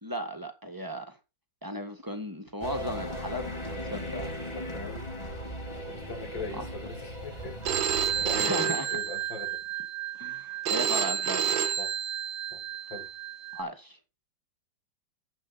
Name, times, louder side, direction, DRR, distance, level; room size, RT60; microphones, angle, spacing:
voice 1, 0.0-1.2 1.6-4.3 6.5-6.6 8.4-8.9 10.1-11.5 13.5-14.0, equal, 10° right, 1.7 m, -36 dB
sound 1, 2.6-8.4, left 1 dB, 15° left, 2.4 m, -37 dB
voice 2, 4.5-5.1 5.9-9.6 11.8-11.9 12.5-12.6 12.9-13.1, left 3 dB, 75° left, 3.4 m, -40 dB
Telephone, 7.7-13.6, right 9 dB, 80° right, 1.7 m, -30 dB
11.5 x 8.2 x 4.2 m
omnidirectional pair, 2.1 m